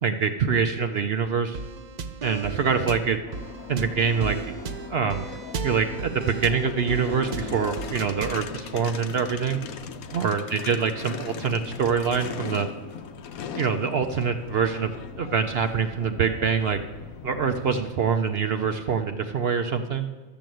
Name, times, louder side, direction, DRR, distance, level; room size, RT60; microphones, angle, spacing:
voice 1, 0.0-1.6 2.2-3.2 3.7-4.6 4.9-5.3 5.6-9.6 10.1-12.7 13.5-16.8 17.2-20.1, right 6 dB, 60° right, 7 dB, 0.7 m, -25 dB
sound 1, 1.5-8.5, right 5 dB, 85° right, 0.3 m, -35 dB
sound 2, 3.3-17.8, left 6 dB, 75° left, 1.2 m, -39 dB
12.5 x 7.0 x 7.6 m, 1.3 s
omnidirectional pair, 1.5 m